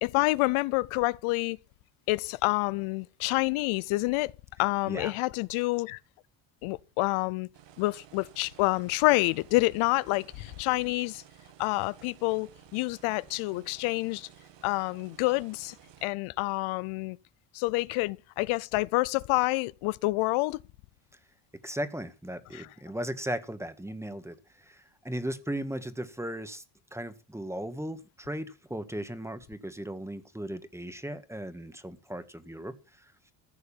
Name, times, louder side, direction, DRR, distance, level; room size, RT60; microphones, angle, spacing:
voice 1, 0.0-1.6 2.1-4.3 4.6-6.0 6.6-7.5 7.8-11.2 11.6-14.3 14.6-15.8 16.0-17.2 17.5-20.6 22.5-22.7, left 22 dB, 80° left, 0.7 m, -28 dB
sound 1, 7.5-16.1, right 11 dB, 60° right, 1.8 m, -55 dB
voice 2, 21.6-26.6 26.9-33.3, right 1 dB, 5° right, 1.7 m, -37 dB
15.0 x 6.6 x 7.2 m
supercardioid pair, 85°, 48 cm